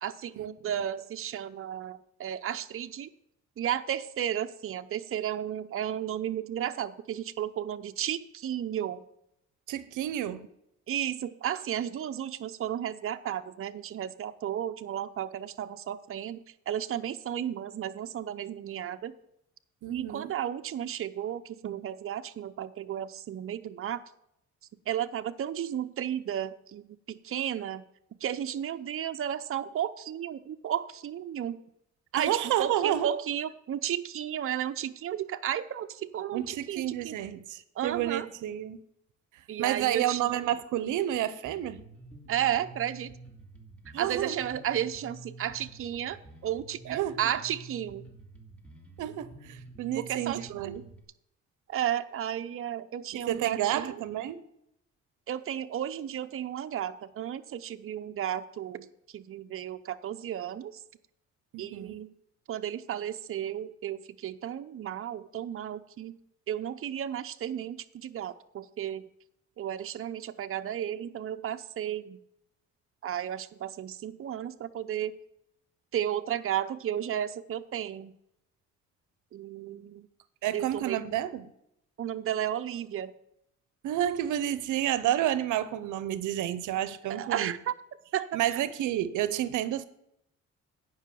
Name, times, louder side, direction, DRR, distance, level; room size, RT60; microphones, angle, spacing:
voice 1, 0.0-3.1 3.6-9.0 10.9-19.1 19.9-24.0 24.9-27.8 28.2-31.6 32.1-37.1 37.8-38.3 39.5-40.3 42.3-43.1 44.0-48.1 50.0-50.8 51.7-54.0 55.3-60.7 61.6-62.1 62.5-66.2 66.5-69.1 69.6-72.2 73.0-75.1 75.9-78.1 79.3-80.1 80.5-81.0 82.0-83.1 87.1-87.7 88.1-88.6, right 10 dB, 45° right, 0.7 m, -33 dB
voice 2, 9.7-10.5 19.8-20.3 32.2-33.1 36.3-38.8 39.6-41.8 43.9-44.4 46.9-47.2 49.0-50.8 53.3-54.4 61.5-62.0 80.4-81.5 83.8-87.5 88.3-89.8, right 12 dB, 80° right, 0.7 m, -30 dB
Bass guitar, 41.4-51.0, right 2 dB, 5° left, 2.5 m, -49 dB
9.9 x 5.6 x 6.8 m
cardioid pair, 90°, 30 cm